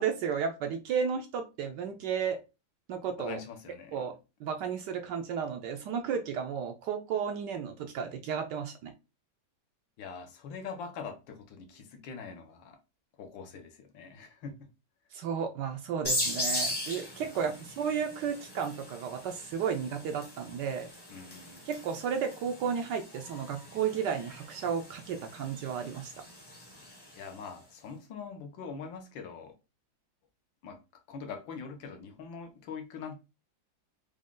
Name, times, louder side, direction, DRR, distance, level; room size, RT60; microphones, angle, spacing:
voice 1, 0.0-2.4 2.9-3.4 3.9-8.9 15.1-20.9 21.7-26.1, right 7 dB, 70° right, 1.1 m, -33 dB
voice 2, 3.2-4.0 10.0-12.8 13.2-14.7 17.2-17.4 21.1-21.6 27.2-29.5 30.6-30.8 31.1-33.1, left 5 dB, 75° left, 1.6 m, -43 dB
sound 1, 16.0-27.4, left 1 dB, 20° left, 0.7 m, -39 dB
4.9 x 2.3 x 3.7 m
omnidirectional pair, 2.1 m